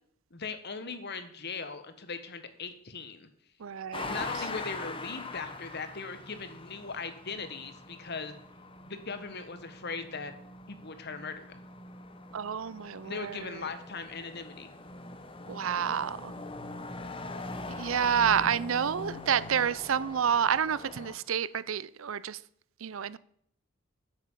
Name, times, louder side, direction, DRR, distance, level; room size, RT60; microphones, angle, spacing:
voice 1, 0.3-3.3 4.1-8.3 8.8-10.3 10.7-11.4 13.0-14.7, left 4 dB, 55° left, 1.4 m, -39 dB
voice 2, 3.6-4.1 12.3-13.1 15.5-16.3 17.8-22.4 22.8-23.2, right 8 dB, 75° right, 0.5 m, -29 dB
sound 1, 3.9-21.2, left 2 dB, 25° left, 1.1 m, -42 dB
9.8 x 8.4 x 7.3 m
head